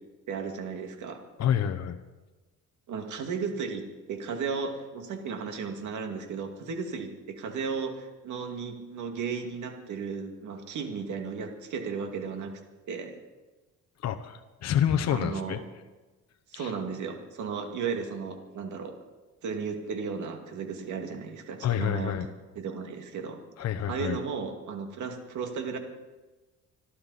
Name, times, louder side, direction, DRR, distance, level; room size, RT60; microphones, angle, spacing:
voice 1, 0.3-1.2 2.9-3.8 4.1-12.6 12.9-13.2 15.1-15.6 16.5-18.9 19.4-22.3 22.6-23.4 23.8-25.8, right 5 dB, 65° right, 4 dB, 2.2 m, -34 dB
voice 2, 1.4-2.0 14.0-15.6 16.5-16.7 21.6-22.3 23.6-24.2, left 9 dB, 55° left, 6 dB, 0.9 m, -28 dB
26.0 x 12.5 x 4.2 m, 1.2 s
cardioid pair, 120°, 32 cm